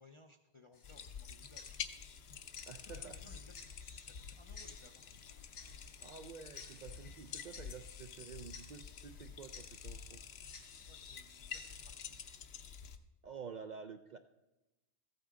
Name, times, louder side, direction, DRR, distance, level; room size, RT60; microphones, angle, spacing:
voice 1, 0.0-1.9 2.6-6.0 10.9-12.2, left 2 dB, 40° left, 4 dB, 0.4 m, -62 dB
Tick-tock, 0.7-12.4, left 4 dB, 80° left, 1.6 m, -58 dB
sound 1, 0.8-13.0, left 7 dB, 65° left, 0.9 m, -49 dB
voice 2, 2.7-3.4 6.0-10.2 13.2-14.2, right 6 dB, 60° right, 7 dB, 0.4 m, -50 dB
14.5 x 8.9 x 3.7 m, 1.0 s
omnidirectional pair, 1.2 m